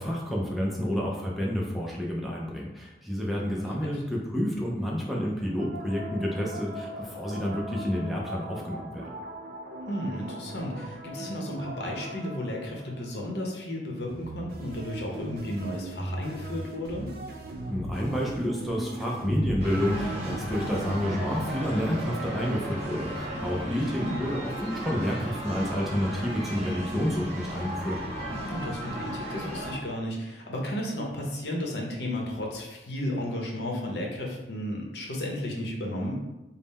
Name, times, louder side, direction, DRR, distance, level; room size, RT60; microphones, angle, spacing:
voice 1, 0.0-9.1 17.7-28.0, equal, ahead, -3 dB, 0.4 m, -29 dB
sound 1, 5.4-13.6 14.1-21.5, right 1 dB, 55° right, 0.5 m, -38 dB
voice 2, 9.9-17.1 24.0-24.3 28.5-36.1, left 1 dB, 65° left, -1 dB, 0.8 m, -33 dB
sound 2, 19.6-29.7, right 1 dB, 35° right, 0.9 m, -35 dB
3.6 x 2.0 x 4.0 m, 1.0 s
head